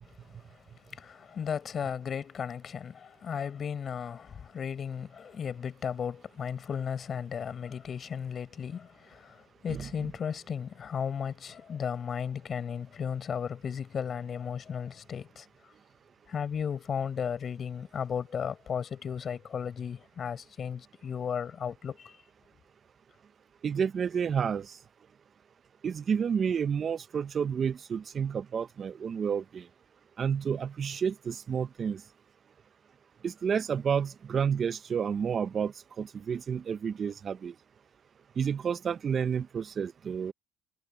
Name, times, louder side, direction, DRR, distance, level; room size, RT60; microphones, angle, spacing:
voice 1, 0.0-15.5 16.3-22.2, left 7 dB, 40° left, 7.2 m, -35 dB
voice 2, 23.6-24.8 25.8-29.6 30.2-32.0 33.2-37.5 38.4-40.3, right 7 dB, 40° right, 0.6 m, -30 dB
supercardioid pair, 90°, 0 cm